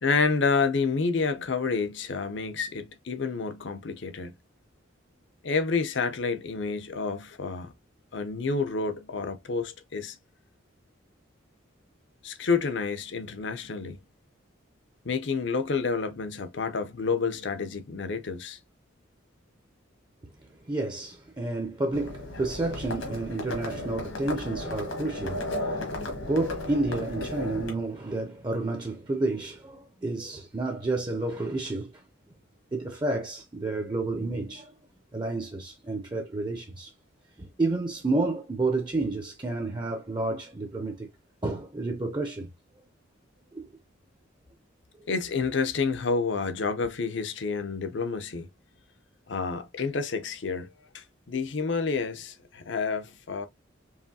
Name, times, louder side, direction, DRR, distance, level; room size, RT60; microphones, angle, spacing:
voice 1, 0.0-4.3 5.4-7.7 8.1-10.2 12.2-14.0 15.0-18.6 45.1-48.5 49.3-53.5, left 4 dB, 65° left, 0.7 m, -29 dB
voice 2, 20.6-25.8 26.2-32.0 32.7-34.7 35.1-36.9 37.4-41.1 41.4-42.5 42.8-42.9 43.5-43.7, right 2 dB, 20° right, 0.6 m, -30 dB
Livestock farm animals working animals, 21.9-27.7, left 1 dB, 80° left, 1.7 m, -34 dB
4.8 x 3.1 x 2.7 m
head